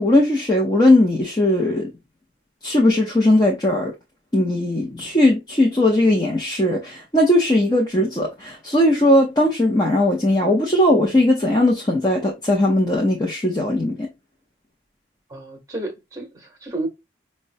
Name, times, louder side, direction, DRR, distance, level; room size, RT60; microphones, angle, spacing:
voice 1, 0.0-1.9 2.6-3.9 4.3-14.1, left 1 dB, 20° left, 0.6 m, -18 dB
voice 2, 15.3-16.9, right 2 dB, 20° right, 1.0 m, -31 dB
5.1 x 2.1 x 2.6 m
head